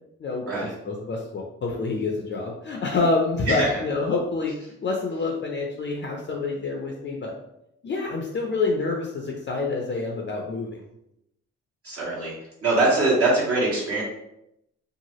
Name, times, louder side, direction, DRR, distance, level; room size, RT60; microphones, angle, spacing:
voice 1, 0.8-4.5 4.8-7.3 7.8-10.8, left 3 dB, 35° left, 0 dB, 0.5 m, -27 dB
voice 2, 11.8-12.3 12.6-14.0, right 2 dB, 50° right, -7 dB, 1.2 m, -22 dB
2.8 x 2.4 x 2.9 m, 0.82 s
cardioid pair, 90°, 30 cm